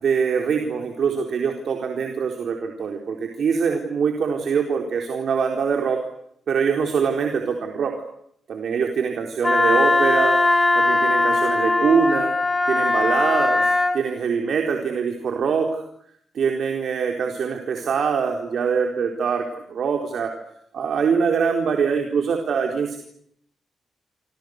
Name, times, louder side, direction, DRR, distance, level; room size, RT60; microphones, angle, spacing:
voice 1, 0.0-6.0 6.5-7.9 8.5-10.4 10.7-12.3 12.7-15.9 16.3-20.3 20.7-23.0, right 6 dB, 60° right, 3 dB, 4.2 m, -23 dB
Wind instrument woodwind instrument, 9.4-14.0, left 2 dB, 15° left, 2.8 m, -19 dB
28.5 x 28.0 x 6.7 m, 0.70 s
wide cardioid pair, 165°, 0 cm